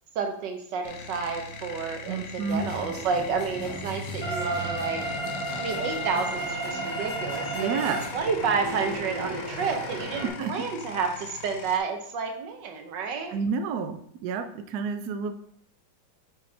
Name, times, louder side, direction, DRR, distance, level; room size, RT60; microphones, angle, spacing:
voice 1, 0.1-5.0 5.6-13.4, right 5 dB, 65° right, 4 dB, 1.5 m, -30 dB
sound 1, 0.8-11.8, left 6 dB, 70° left, 0.9 m, -42 dB
voice 2, 2.1-2.6 7.5-8.0 10.2-10.5 13.3-15.3, right 5 dB, 80° right, 8 dB, 0.8 m, -30 dB
sound 2, 2.5-10.3, right 1 dB, 20° left, 1.8 m, -33 dB
5.7 x 5.5 x 3.3 m, 0.68 s
omnidirectional pair, 2.3 m